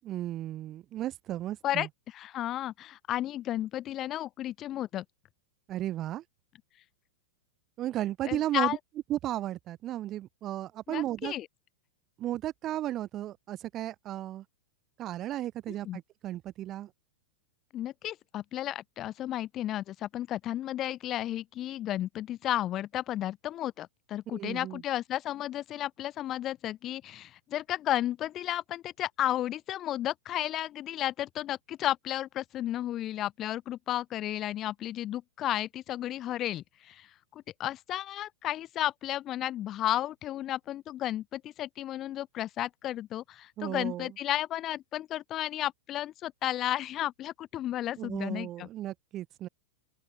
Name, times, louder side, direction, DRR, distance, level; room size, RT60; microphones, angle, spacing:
voice 1, 0.0-1.9 5.7-6.2 7.8-8.8 9.1-11.3 12.2-14.4 15.0-16.9 24.3-24.8 43.6-44.1 48.0-49.5, right 13 dB, 30° right, 6.9 m, -34 dB
voice 2, 1.6-5.0 8.3-8.8 10.9-11.5 15.8-16.0 17.7-48.7, left 13 dB, 30° left, 2.7 m, -33 dB
open air
supercardioid pair, 150°, 0 cm